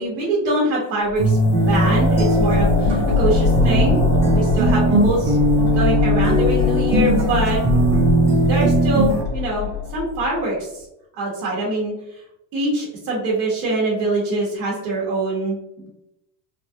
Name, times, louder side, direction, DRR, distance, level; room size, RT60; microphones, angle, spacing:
voice 1, 0.0-4.0 4.3-5.4 5.7-7.6 8.5-10.8 11.2-11.9 12.5-15.9, right 2 dB, 80° right, -5 dB, 1.3 m, -24 dB
sound 1, 1.1-10.4, left 4 dB, 70° left, 1.2 m, -22 dB
sound 2, 1.2-9.2, right 1 dB, 35° right, 1.1 m, -19 dB
3.4 x 2.4 x 2.8 m, 0.87 s
supercardioid pair, 105°, 45 cm